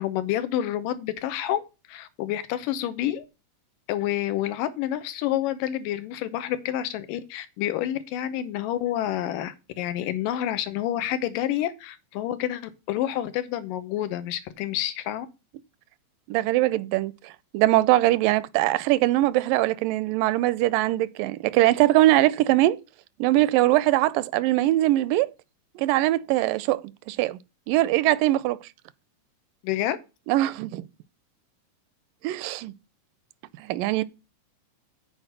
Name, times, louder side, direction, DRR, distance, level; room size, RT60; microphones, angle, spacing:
voice 1, 0.0-1.6 1.9-3.2 3.9-15.3 29.6-30.0, left 12 dB, 80° left, 2.5 m, -28 dB
voice 2, 16.3-22.8 23.2-25.3 25.8-26.8 27.1-27.4 27.7-28.6 30.3-30.8 32.2-32.7 33.6-34.0, right 16 dB, 85° right, 2.2 m, -22 dB
8.1 x 4.7 x 6.7 m
omnidirectional pair, 3.9 m